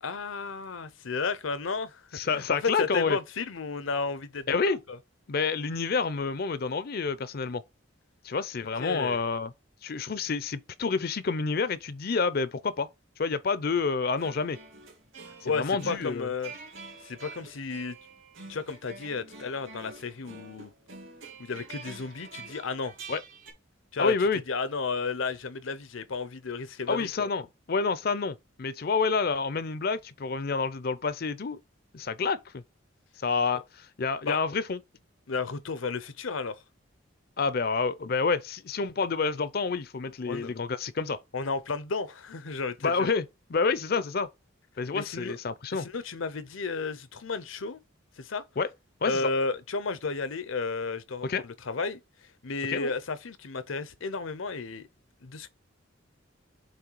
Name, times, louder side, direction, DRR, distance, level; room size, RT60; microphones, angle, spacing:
voice 1, 0.0-5.0 8.8-9.2 15.4-16.5 17.0-18.0 18.5-20.7 21.4-22.9 23.9-24.2 24.5-27.3 34.3-34.4 35.3-36.6 40.3-40.5 41.3-43.1 44.9-45.4 45.7-47.8 48.2-48.4 49.0-54.9 55.2-55.5, left 4 dB, 80° left, 0.8 m, -33 dB
voice 2, 2.1-3.2 4.5-4.8 5.3-7.6 8.2-9.5 9.8-12.9 13.2-14.6 15.5-16.3 23.1-23.2 24.0-24.4 26.9-27.4 27.7-31.6 31.9-32.6 33.2-34.8 37.4-41.2 42.8-44.3 44.8-45.9 48.6-48.7 49.0-49.3 51.2-51.4 52.7-52.9, left 4 dB, 50° left, 0.5 m, -28 dB
sound 1, 14.0-23.5, right 4 dB, 80° right, 2.7 m, -46 dB
7.7 x 3.2 x 4.6 m
head